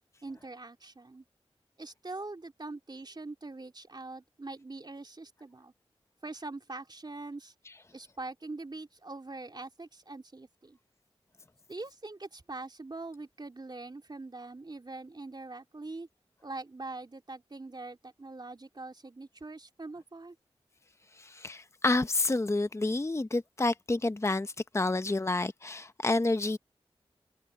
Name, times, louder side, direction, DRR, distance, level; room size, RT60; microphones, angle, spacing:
voice 1, 0.2-1.2 1.8-5.7 6.2-7.5 7.9-10.8 11.7-16.1 16.4-20.4, right 2 dB, 45° right, 3.1 m, -43 dB
voice 2, 21.1-26.6, left 2 dB, 25° left, 0.8 m, -29 dB
cardioid pair, 40°, 10 cm